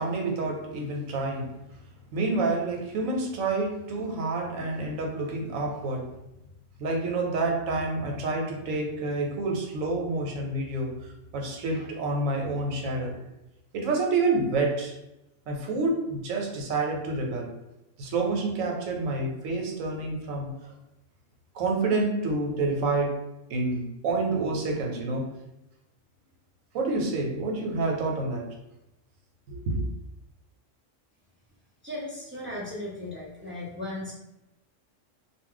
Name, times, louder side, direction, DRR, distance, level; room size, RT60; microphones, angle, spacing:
voice 1, 0.0-1.5 2.1-6.1 6.8-13.2 13.7-14.9 15.5-17.5 18.0-20.5 21.5-23.2 23.5-25.3 26.7-28.5 29.5-29.8, right 3 dB, 85° right, 1 dB, 1.0 m, -28 dB
voice 2, 31.8-34.1, left 1 dB, 15° right, -7 dB, 0.4 m, -36 dB
2.4 x 2.1 x 3.7 m, 0.91 s
omnidirectional pair, 1.3 m